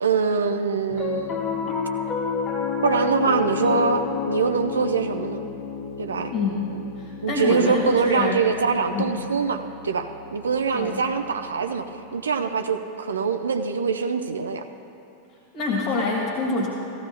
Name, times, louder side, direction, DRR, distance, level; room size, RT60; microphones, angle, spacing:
voice 1, 0.0-1.3 1.6-1.7 2.8-5.4 6.0-6.3 7.2-11.9 12.1-14.6, right 5 dB, 70° right, 7 dB, 0.5 m, -23 dB
Piano, 0.9-11.4, left 6 dB, 20° left, 1.3 m, -31 dB
voice 2, 6.3-8.4 8.9-9.1 10.7-11.0 15.5-16.7, left 3 dB, 40° left, -4 dB, 1.6 m, -26 dB
15.5 x 15.0 x 2.2 m, 2.9 s
figure-of-eight pair, 90°, 0 cm